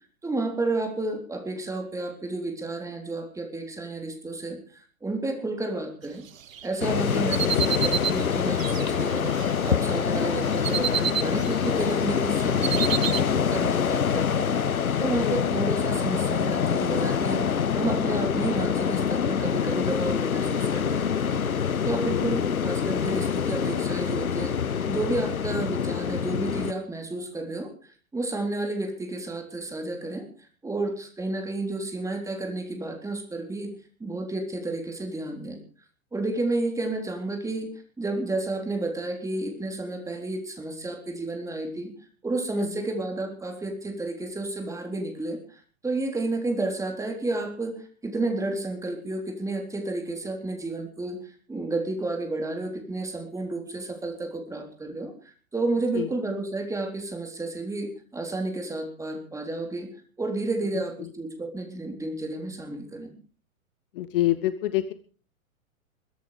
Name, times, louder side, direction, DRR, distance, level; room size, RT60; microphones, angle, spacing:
voice 1, 0.2-6.2 6.6-14.5 15.0-21.4 21.8-27.7 28.1-30.3 30.6-33.7 34.0-35.6 36.1-37.7 38.0-41.9 42.2-59.9 60.2-63.1, right 2 dB, 5° right, 3 dB, 3.6 m, -31 dB
sound 1, 6.5-9.7 10.1-11.9 12.2-13.2, right 9 dB, 70° right, 1.0 m, -30 dB
sound 2, 6.8-26.7, left 7 dB, 80° left, 0.9 m, -25 dB
voice 2, 22.0-22.4 42.5-42.9 55.9-56.1 61.0-61.1 63.9-64.9, left 14 dB, 40° left, 14 dB, 1.0 m, -27 dB
22.0 x 11.0 x 5.0 m, 0.42 s
figure-of-eight pair, 105°, 42 cm